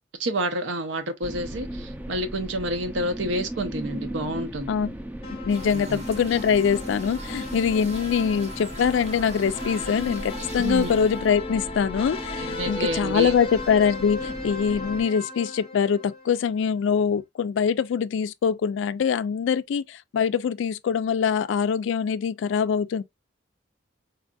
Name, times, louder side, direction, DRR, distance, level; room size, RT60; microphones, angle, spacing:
voice 1, 0.2-4.7 5.7-6.0 10.6-10.9 12.4-13.4, right 1 dB, 75° right, 0.7 m, -29 dB
sound 1, 1.2-15.1, right 1 dB, 10° right, 0.3 m, -37 dB
sound 2, 5.2-16.5, left 3 dB, 30° left, 0.6 m, -36 dB
voice 2, 5.3-23.0, left 7 dB, 75° left, 0.3 m, -24 dB
sound 3, 5.5-11.4, right 2 dB, 35° right, 0.8 m, -41 dB
4.0 x 2.6 x 2.3 m
head